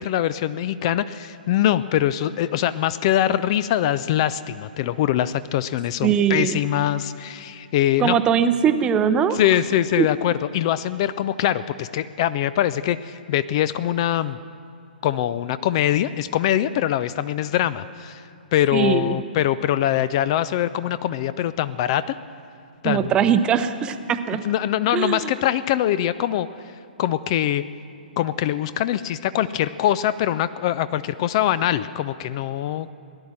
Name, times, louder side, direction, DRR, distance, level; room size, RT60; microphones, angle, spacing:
voice 1, 0.0-8.2 9.3-14.4 15.0-18.2 18.5-22.1 22.8-23.1 24.4-26.5 27.0-27.6 28.2-32.9, left 12 dB, 35° left, 16 dB, 0.3 m, -23 dB
voice 2, 6.0-6.6 8.0-9.4 10.0-10.1 18.7-19.2 22.8-24.4 24.9-25.3, right 8 dB, 15° right, 10 dB, 0.6 m, -21 dB
17.5 x 10.5 x 7.5 m, 2.5 s
figure-of-eight pair, 120°, 5 cm